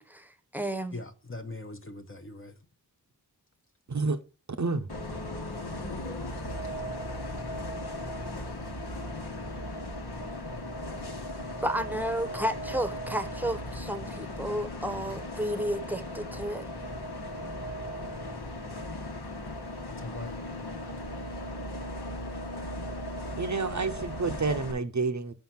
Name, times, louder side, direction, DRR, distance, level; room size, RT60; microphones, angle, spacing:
voice 1, 0.0-1.0 11.6-16.7, right 1 dB, 5° right, 0.9 m, -32 dB
voice 2, 0.9-2.6 20.0-20.3, left 2 dB, 35° left, 0.9 m, -40 dB
Bus, 4.9-24.7, left 1 dB, 80° left, 1.3 m, -37 dB
voice 3, 23.4-25.3, right 4 dB, 50° right, 0.7 m, -29 dB
5.6 x 5.2 x 5.9 m
wide cardioid pair, 55°, 38 cm